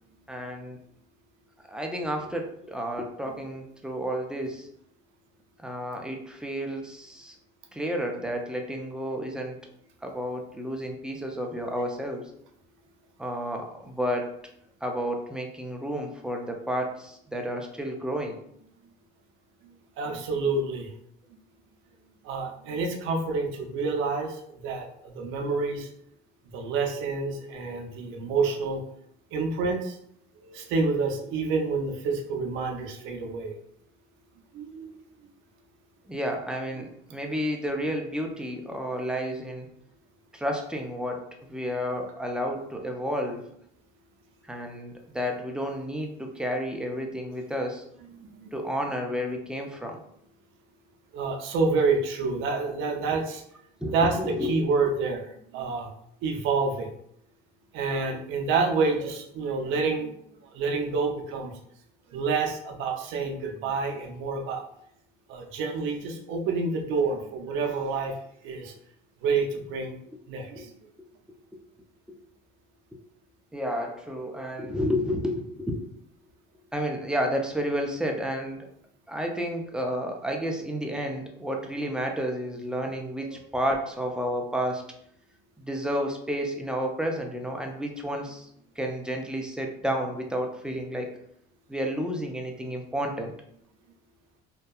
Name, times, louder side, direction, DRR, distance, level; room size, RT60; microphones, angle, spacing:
voice 1, 0.3-0.8 1.7-4.7 5.6-7.3 7.7-9.6 10.0-12.3 13.2-14.3 14.8-18.4 36.1-39.7 40.3-43.5 44.4-47.8 48.5-50.0 53.8-54.6 73.5-75.8 76.7-78.7 79.1-84.9 85.6-88.5 88.8-91.2 91.7-93.4, equal, 5° right, 2 dB, 0.4 m, -31 dB
voice 2, 20.0-20.9 22.2-25.9 26.5-28.8 29.3-30.0 30.4-33.5 34.5-35.0 36.8-36.9 48.2-48.5 51.1-53.4 53.9-55.9 56.2-56.9 57.7-60.1 60.5-61.5 62.1-64.6 65.3-68.1 68.4-68.7 69.2-70.0 70.3-70.7, right 4 dB, 70° right, 3 dB, 0.5 m, -28 dB
2.6 x 2.2 x 2.2 m, 0.70 s
supercardioid pair, 85°, 21 cm